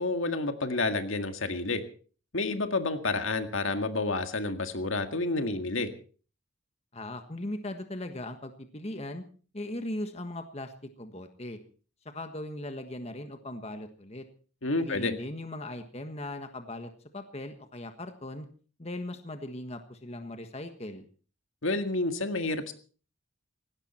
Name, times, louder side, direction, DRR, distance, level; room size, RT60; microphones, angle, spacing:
voice 1, 0.0-1.8 2.3-5.9 14.6-15.1 21.6-22.7, left 3 dB, 70° left, 7 dB, 1.9 m, -29 dB
voice 2, 6.9-9.2 9.5-10.7 11.0-11.6 12.1-14.2 14.8-18.5 18.8-21.0, left 1 dB, 30° left, 7 dB, 1.5 m, -38 dB
18.5 x 17.0 x 4.4 m, 0.41 s
head